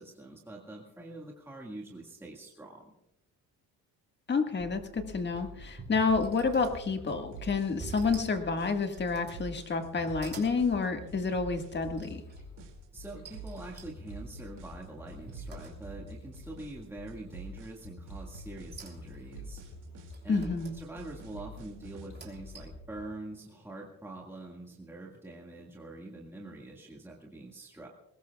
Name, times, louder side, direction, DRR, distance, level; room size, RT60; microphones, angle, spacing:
voice 1, 0.0-2.9 12.9-19.8 20.2-27.9, right 2 dB, 5° right, -2 dB, 1.9 m, -45 dB
voice 2, 4.3-12.2 20.3-20.8, left 4 dB, 30° left, 6 dB, 1.8 m, -29 dB
sound 1, 4.6-23.0, left 3 dB, 65° left, 4.0 m, -48 dB
sound 2, 5.5-7.2 7.8-8.4 8.8-9.5 9.9-10.6 12.0-12.4 13.2-16.1 16.5-17.0 18.3-19.3 20.1-20.8 21.9-22.9, right 3 dB, 30° right, 3.2 m, -49 dB
sound 3, 6.1-22.1, right 6 dB, 65° right, 2.5 m, -49 dB
21.5 x 19.5 x 2.4 m, 0.87 s
cardioid pair, 115°, 35 cm